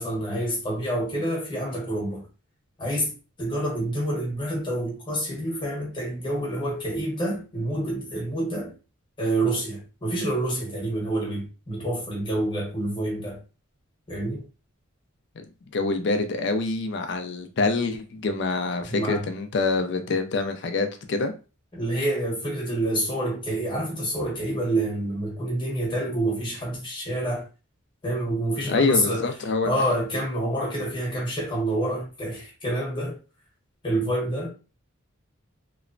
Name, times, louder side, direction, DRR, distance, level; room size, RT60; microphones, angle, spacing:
voice 1, 0.0-2.2 2.8-3.1 3.4-8.7 9.2-13.4 14.1-14.4 18.9-19.2 21.7-27.4 28.0-29.3 29.6-33.2 33.8-34.5, right 1 dB, 25° left, 1.0 m, -27 dB
voice 2, 15.7-21.3 28.7-29.7, left 3 dB, 55° left, 0.4 m, -26 dB
2.9 x 2.1 x 2.5 m
head